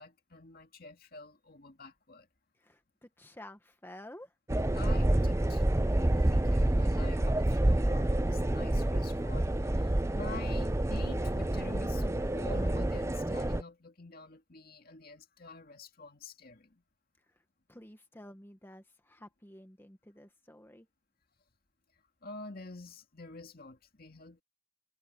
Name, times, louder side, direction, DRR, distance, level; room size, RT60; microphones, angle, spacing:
voice 1, 0.0-2.3 4.7-5.7 5.9-16.8 22.2-24.4, left 3 dB, 50° left, 2.2 m, -47 dB
voice 2, 2.6-4.3 17.3-17.4 17.7-20.9, left 1 dB, 10° left, 1.4 m, -51 dB
sound 1, 4.5-13.6, right 1 dB, 15° right, 0.5 m, -28 dB
head